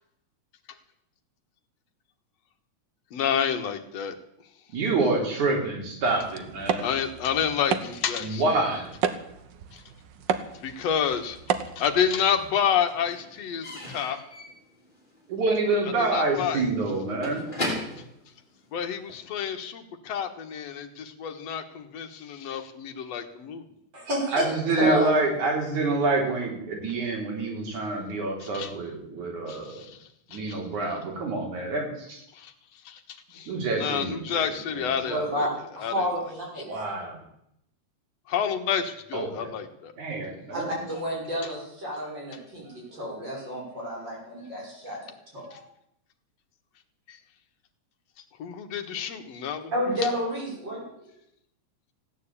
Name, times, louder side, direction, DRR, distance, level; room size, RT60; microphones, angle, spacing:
voice 1, 3.1-4.1 6.8-8.4 9.7-9.8 10.5-11.4 11.8-14.2 16.0-16.6 18.7-23.6 28.4-28.7 29.5-30.4 32.3-32.5 32.9-35.5 35.8-36.1 38.3-39.9 45.5-45.6 47.1-47.2 48.4-49.7, left 8 dB, 65° left, 6 dB, 2.5 m, -29 dB
voice 2, 4.7-6.9 8.2-8.9 15.3-17.5 24.3-29.9 30.3-32.2 33.5-35.2 36.7-37.2 39.1-39.6 40.0-40.8, right 3 dB, 85° right, 0 dB, 5.2 m, -27 dB
sound 1, 6.0-12.5, right 7 dB, 65° right, 1.1 m, -33 dB
Slam / Squeak / Wood, 11.4-12.2 12.5-19.2, left 1 dB, 15° left, 3.9 m, -38 dB
voice 3, 23.9-24.5 24.8-25.2 35.0-35.5 35.8-36.7 40.5-45.7 49.7-50.9, equal, 35° right, -3 dB, 6.7 m, -30 dB
16.0 x 9.5 x 8.5 m, 0.78 s
omnidirectional pair, 3.3 m